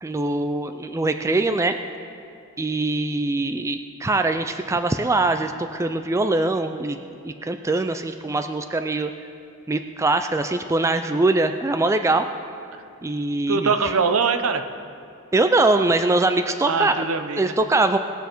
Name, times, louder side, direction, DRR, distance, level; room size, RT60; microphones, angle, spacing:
voice 1, 0.0-1.8 2.6-7.0 7.2-9.1 9.7-12.2 13.0-13.9 15.3-17.0 17.4-18.0, right 2 dB, 15° right, 7 dB, 0.3 m, -22 dB
voice 2, 13.5-14.6 16.7-17.5, right 5 dB, 70° right, 8 dB, 0.7 m, -22 dB
19.5 x 7.0 x 4.5 m, 2.6 s
head